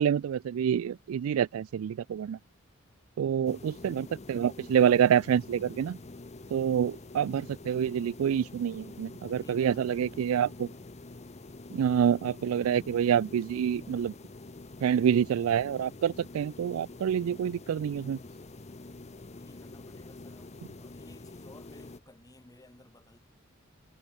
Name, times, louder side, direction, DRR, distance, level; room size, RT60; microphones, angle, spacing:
voice 1, 0.0-2.4 3.2-6.0 6.5-10.7 11.7-14.1 14.8-18.2, right 8 dB, 90° right, 0.3 m, -27 dB
voice 2, 3.2-3.9 9.3-10.3 19.4-23.2, left 1 dB, 15° left, 1.6 m, -56 dB
sound 1, 3.4-22.0, left 2 dB, 35° left, 0.8 m, -47 dB
head